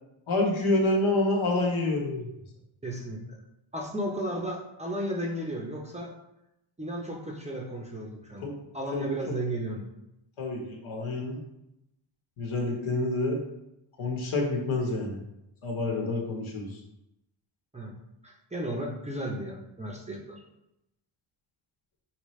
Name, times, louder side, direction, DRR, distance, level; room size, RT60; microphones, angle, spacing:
voice 1, 0.3-2.3 8.4-8.5 8.9-9.3 10.4-11.4 12.4-13.4 14.0-15.2 15.6-16.8, left 2 dB, 75° left, 0 dB, 1.2 m, -28 dB
voice 2, 2.8-3.4 3.7-6.1 6.8-8.5 8.7-9.8 17.7-17.9 18.2-20.4, right 1 dB, 15° right, -1 dB, 0.6 m, -34 dB
5.1 x 2.9 x 3.2 m, 0.87 s
cardioid pair, 105°, 50 cm